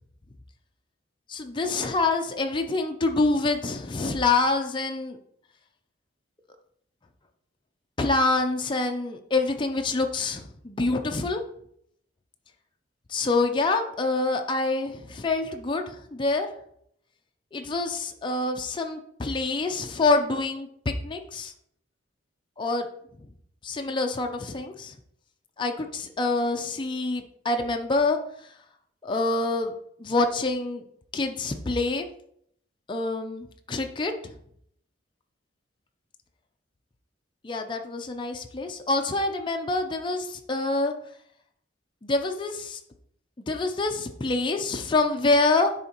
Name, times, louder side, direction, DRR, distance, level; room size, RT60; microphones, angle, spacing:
voice 1, 1.3-5.2 8.0-11.4 13.1-16.5 17.5-20.7 21.0-21.5 22.6-22.9 23.6-25.0 25.6-28.5 29.0-29.7 30.0-30.8 31.1-32.1 32.9-34.3 37.4-40.9 42.0-42.8 43.5-45.7, left 3 dB, 25° left, 4 dB, 0.4 m, -26 dB
10.0 x 3.5 x 2.9 m, 0.70 s
head